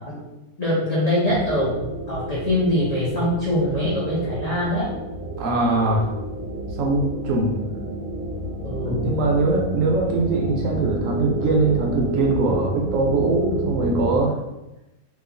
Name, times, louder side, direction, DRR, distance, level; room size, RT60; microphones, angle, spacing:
voice 1, 0.6-1.8 2.1-4.9 8.6-9.1, left 1 dB, 70° left, -7 dB, 0.3 m, -23 dB
sound 1, 1.2-14.2, right 2 dB, 90° right, 1.1 m, -30 dB
voice 2, 5.4-6.1 6.7-7.5 8.8-14.4, right 2 dB, 70° right, -1 dB, 0.9 m, -22 dB
2.9 x 2.3 x 2.4 m, 0.95 s
omnidirectional pair, 1.6 m